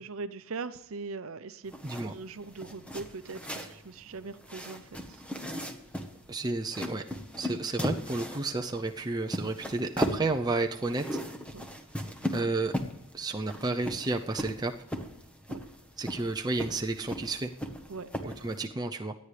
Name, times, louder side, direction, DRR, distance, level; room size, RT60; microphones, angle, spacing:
voice 1, 0.0-5.2 11.5-11.6 15.5-15.6 17.9-18.3, right 4 dB, 70° right, 12 dB, 0.7 m, -41 dB
sound 1, 1.6-18.7, equal, 5° left, 1.1 m, -38 dB
voice 2, 1.8-2.1 6.3-7.0 7.4-11.0 12.3-12.7 13.1-14.7 16.0-17.5 18.2-19.1, right 3 dB, 20° right, 3 dB, 0.5 m, -31 dB
23.5 x 9.6 x 3.3 m, 0.83 s
head